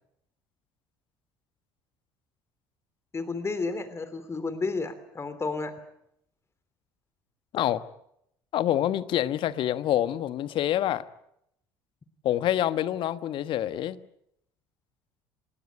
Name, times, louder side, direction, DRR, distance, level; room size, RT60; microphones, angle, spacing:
voice 1, 3.1-5.7, left 3 dB, 25° left, 2.9 m, -31 dB
voice 2, 7.5-7.8 8.5-11.0 12.2-14.0, left 12 dB, 55° left, 1.3 m, -26 dB
27.0 x 20.0 x 8.5 m
hypercardioid pair, 60°, 10 cm